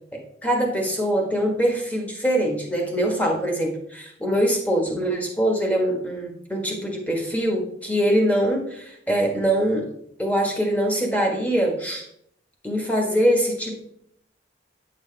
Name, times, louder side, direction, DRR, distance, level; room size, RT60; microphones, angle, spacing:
voice 1, 0.4-9.8 10.2-12.0 12.6-13.8, equal, 10° left, 0 dB, 1.5 m, -23 dB
9.3 x 5.8 x 3.4 m, 0.70 s
head